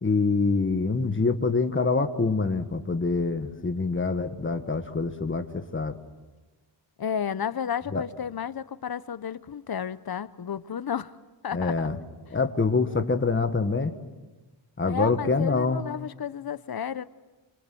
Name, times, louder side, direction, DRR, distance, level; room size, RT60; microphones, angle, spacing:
voice 1, 0.0-5.9 7.9-8.0 11.5-12.0 12.3-13.9 14.8-15.8, left 4 dB, 25° left, 1.5 m, -25 dB
voice 2, 7.0-11.1 11.4-11.9 14.8-17.0, left 8 dB, 50° left, 0.8 m, -32 dB
26.5 x 25.5 x 7.7 m
wide cardioid pair, 150°, 47 cm